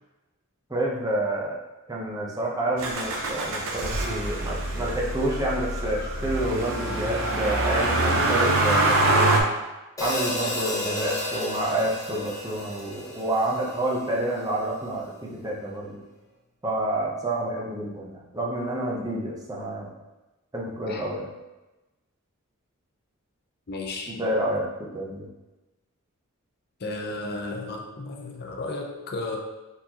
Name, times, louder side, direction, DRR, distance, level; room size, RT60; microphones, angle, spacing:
voice 1, 0.7-1.6 1.9-9.5 10.0-16.0 16.6-19.9 20.5-21.3 24.1-24.7 24.9-25.3, right 1 dB, 15° right, -3 dB, 0.7 m, -29 dB
Motor vehicle (road), 2.8-9.4, right 2 dB, 70° right, 0.6 m, -24 dB
Hi-hat, 10.0-14.3, left 1 dB, 15° left, 0.8 m, -32 dB
voice 2, 23.7-24.3 26.8-29.4, left 2 dB, 45° left, 1 dB, 0.6 m, -34 dB
4.6 x 3.9 x 2.8 m, 1.1 s
head